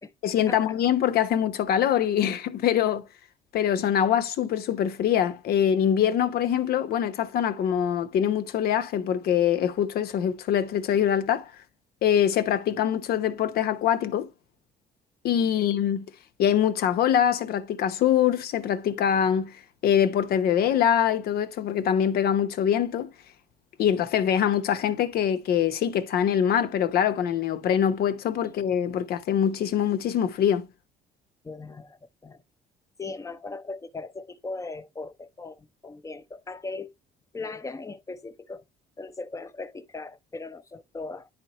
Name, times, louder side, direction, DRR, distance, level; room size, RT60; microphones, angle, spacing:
voice 1, 0.2-3.1 3.5-11.5 12.0-14.3 15.2-16.0 16.4-19.5 19.8-23.1 23.8-30.7, left 9 dB, 65° left, 1.0 m, -24 dB
voice 2, 31.4-32.4 33.0-36.9 37.3-38.6 39.0-41.3, left 3 dB, 20° left, 0.8 m, -38 dB
10.5 x 4.4 x 3.0 m
cardioid pair, 110°, 17 cm